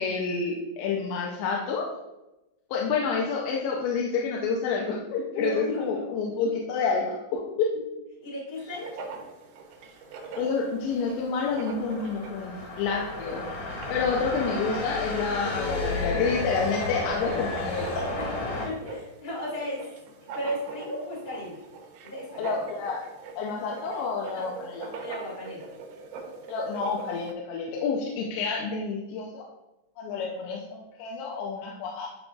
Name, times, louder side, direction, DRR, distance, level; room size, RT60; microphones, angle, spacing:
voice 1, 0.0-1.9 2.7-7.7 10.4-13.4 13.9-17.9 22.4-23.0 23.4-24.9 26.5-29.5 30.0-32.1, left 5 dB, 85° left, -2 dB, 2.9 m, -29 dB
voice 2, 5.4-6.0 8.2-9.1 18.2-18.3 18.6-19.8 20.2-21.6 22.0-22.5 24.3-24.4 25.0-25.6, left 1 dB, 50° left, -5 dB, 0.7 m, -34 dB
Writing, 8.6-27.3, right 4 dB, 80° right, 2.5 m, -43 dB
sound 1, 10.7-18.7, left 3 dB, 65° left, 3.0 m, -33 dB
11.0 x 3.8 x 2.4 m, 0.99 s
omnidirectional pair, 4.9 m